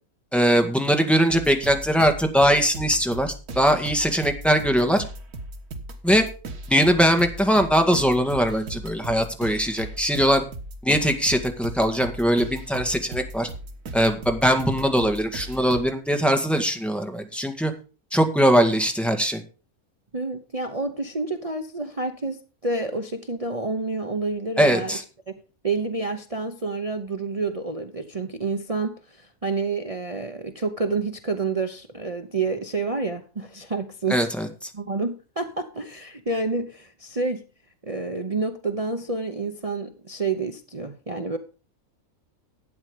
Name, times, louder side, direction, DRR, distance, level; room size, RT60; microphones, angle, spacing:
voice 1, 0.3-5.0 6.0-6.3 6.7-10.4 10.8-13.5 13.9-17.7 18.1-19.4 24.6-25.0 34.1-34.5, equal, ahead, 1.6 m, -21 dB
sound 1, 1.3-15.8, right 1 dB, 90° right, 2.0 m, -37 dB
voice 2, 20.1-25.0 25.3-25.4 25.6-34.3 34.7-37.4 37.8-41.4, right 3 dB, 30° right, 0.8 m, -29 dB
12.0 x 8.9 x 5.0 m
omnidirectional pair, 1.5 m